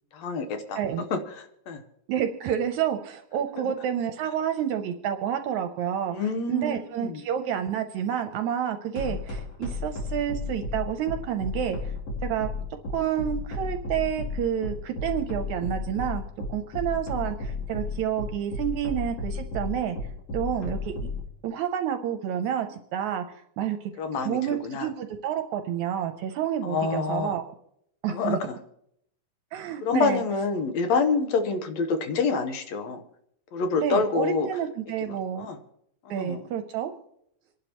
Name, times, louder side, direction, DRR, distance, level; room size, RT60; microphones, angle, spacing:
voice 1, 0.1-0.8 1.1-1.8 3.6-3.7 6.1-7.2 9.1-9.2 24.0-24.9 26.6-27.4 28.1-28.6 29.8-33.0 33.5-34.5 35.1-35.6 36.1-36.4, left 4 dB, 65° left, 2.1 m, -27 dB
voice 2, 2.1-6.2 6.5-11.8 12.2-12.5 12.9-16.2 16.5-20.0 20.3-20.9 21.4-23.9 24.2-27.5 28.0-28.4 29.5-30.2 33.8-35.5 36.1-36.9, right 9 dB, 75° right, 1.9 m, -29 dB
sound 1, 9.0-21.2, left 3 dB, 50° left, 3.2 m, -32 dB
26.5 x 11.0 x 3.0 m
omnidirectional pair, 3.7 m